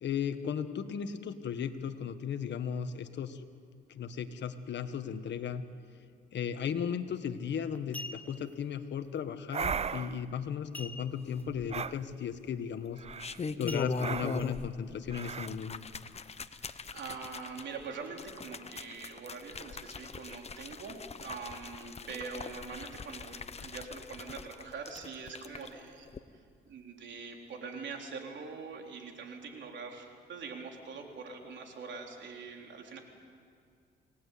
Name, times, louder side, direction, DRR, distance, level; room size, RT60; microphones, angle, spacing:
voice 1, 0.0-3.4 3.9-5.6 6.3-13.0 13.6-15.8, left 7 dB, 65° left, 9 dB, 1.6 m, -36 dB
sound 1, 7.1-7.3 7.7-8.5 10.7-11.4 11.7-11.8 12.3-12.6 13.7-14.5 15.0-15.1, left 2 dB, 10° left, 1.0 m, -45 dB
sound 2, 9.5-10.2 11.7-12.0 13.0-13.4 14.0-14.5 15.1-15.5, right 6 dB, 30° right, 0.6 m, -36 dB
sound 3, 11.5-12.1 12.9-14.8 15.1-25.7 26.1-26.2, left 5 dB, 30° left, 1.1 m, -41 dB
voice 2, 16.5-26.1 26.7-33.0, right 4 dB, 65° right, 2 dB, 3.9 m, -43 dB
28.5 x 19.0 x 8.5 m, 2.2 s
cardioid pair, 90°, 20 cm